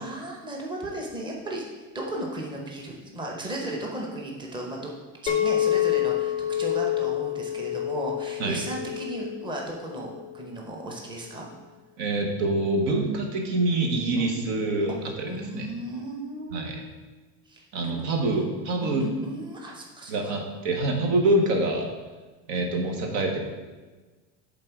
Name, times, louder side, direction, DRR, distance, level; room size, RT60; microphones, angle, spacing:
voice 1, 0.0-1.7 1.9-4.9 5.2-11.5 14.2-14.3 15.2-16.9 17.5-17.9 18.3-18.5 18.8-20.3, right 1 dB, 10° right, -1 dB, 0.8 m, -35 dB
Chink clink, 5.3-10.5, left 12 dB, 20° left, 0.3 m, -28 dB
voice 2, 12.0-15.7 16.5-16.8 17.7-19.0 20.1-21.9 22.5-23.4, right 2 dB, 85° right, 3 dB, 1.3 m, -25 dB
7.5 x 3.9 x 4.6 m, 1.3 s
cardioid pair, 155°, 38 cm